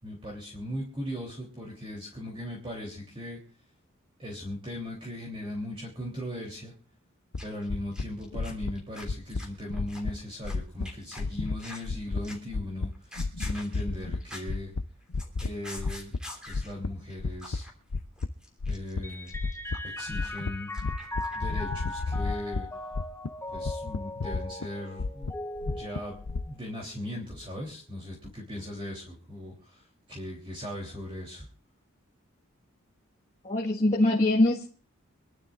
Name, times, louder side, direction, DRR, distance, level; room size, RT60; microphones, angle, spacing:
voice 1, 0.0-3.4 4.2-6.7 7.4-14.7 15.4-16.1 16.4-17.7 18.7-19.4 19.8-20.7 21.3-22.7 23.5-31.5, left 1 dB, 25° right, -2 dB, 3.2 m, -38 dB
sound 1, 7.3-7.4 7.7-8.0 8.3-8.7 9.0-9.4 9.7-10.1 10.4-10.8 11.2-11.6 11.8-12.2 12.5-12.9 13.2-14.2 14.5-14.8 15.1-15.5 15.8-16.2 16.5-17.6 17.9-18.3 18.6-19.0 19.3-19.8 20.1-20.5 20.8-22.6 22.9-23.3 23.5-24.7 25.0-26.5, left 3 dB, 85° left, 0.7 m, -31 dB
sound 2, 7.4-7.7 7.9-10.5 10.8-11.9 12.2-12.6 12.9-14.6 14.9-16.7 17.1-17.2 17.4-17.7 18.0-21.6 21.9-22.0, left 1 dB, 5° right, 3.3 m, -46 dB
Mallet percussion, 19.0-26.8, left 2 dB, 15° left, 1.0 m, -39 dB
voice 2, 33.4-34.7, left 1 dB, 35° left, -3 dB, 1.6 m, -23 dB
26.0 x 12.0 x 2.5 m, 0.41 s
head